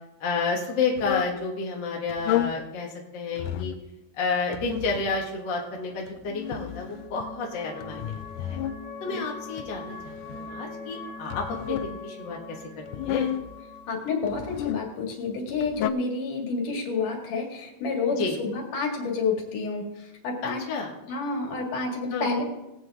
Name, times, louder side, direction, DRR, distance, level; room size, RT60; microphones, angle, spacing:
voice 1, 0.2-3.7 4.1-8.6 9.0-12.6 12.9-13.3 18.2-18.4 20.7-20.9 22.1-22.3, left 4 dB, 45° left, -1 dB, 1.6 m, -30 dB
sound 1, 1.0-1.4 2.1-2.6 3.4-3.8 4.5-5.2 6.1-7.3 7.8-8.8 9.6-10.6 11.3-12.0 12.9-13.5 14.2-14.9 15.5-15.9, left 13 dB, 85° left, 1.9 m, -31 dB
sound 2, 5.3-15.3, left 3 dB, 85° right, 6.2 m, -43 dB
voice 2, 13.9-20.6 21.1-22.4, left 4 dB, 65° left, 0 dB, 3.5 m, -29 dB
19.0 x 8.7 x 3.6 m, 0.94 s
omnidirectional pair, 4.2 m